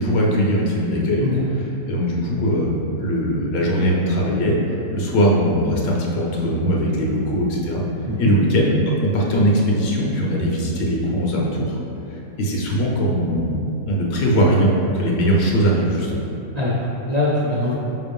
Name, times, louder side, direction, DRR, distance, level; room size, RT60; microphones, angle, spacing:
voice 1, 0.0-1.3 1.9-4.6 4.9-7.8 8.2-11.8 12.4-16.2, equal, 90° left, -2 dB, 1.6 m, -20 dB
voice 2, 16.5-17.7, left 2 dB, 75° right, -6 dB, 0.3 m, -22 dB
5.0 x 3.6 x 5.2 m, 2.8 s
omnidirectional pair, 1.8 m